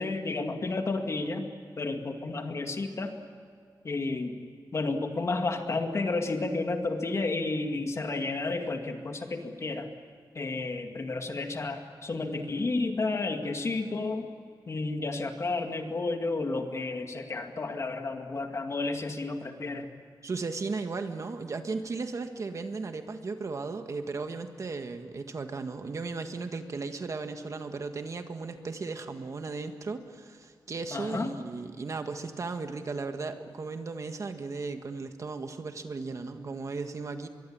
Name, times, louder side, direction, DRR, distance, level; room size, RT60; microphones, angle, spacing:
voice 1, 0.0-1.4 1.8-3.1 3.8-4.3 4.7-9.9 10.3-14.3 14.7-19.9 30.9-31.3, left 3 dB, 40° left, 5 dB, 2.2 m, -31 dB
voice 2, 20.2-37.3, right 4 dB, 45° right, 7 dB, 1.6 m, -36 dB
24.5 x 22.5 x 8.8 m, 2.2 s
wide cardioid pair, 145°, 7 cm